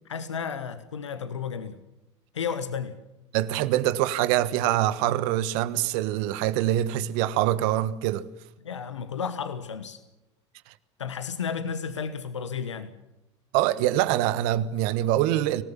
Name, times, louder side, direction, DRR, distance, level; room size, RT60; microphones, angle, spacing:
voice 1, 0.0-1.8 2.3-3.0 8.6-10.0 11.0-12.9, left 6 dB, 90° left, 1.3 m, -32 dB
voice 2, 3.3-8.3 13.5-15.6, right 13 dB, 65° right, 1.4 m, -24 dB
25.0 x 18.5 x 7.4 m
hypercardioid pair, 70°, 15 cm